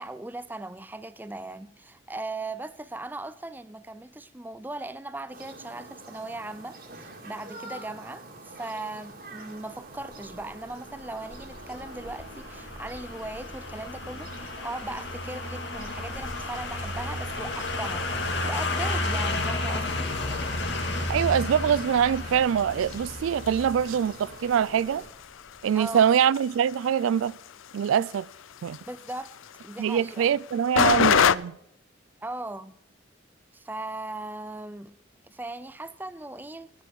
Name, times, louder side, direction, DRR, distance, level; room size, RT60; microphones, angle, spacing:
voice 1, 0.0-18.1 18.4-20.2 25.7-26.0 28.9-29.4 29.6-30.3 32.2-32.7 33.5-34.9 35.3-36.7, right 2 dB, 10° right, 0.4 m, -38 dB
sound 1, 5.3-25.1, right 2 dB, 50° right, 2.2 m, -46 dB
sound 2, 10.3-25.2 25.5-25.6, left 2 dB, 60° left, 2.3 m, -33 dB
sound 3, 16.1-31.4, left 8 dB, 85° left, 0.4 m, -32 dB
voice 2, 21.1-25.0 25.6-27.4 27.7-28.3 28.6-28.8 29.8-31.6, right 8 dB, 85° right, 0.3 m, -24 dB
12.5 x 10.0 x 4.6 m
head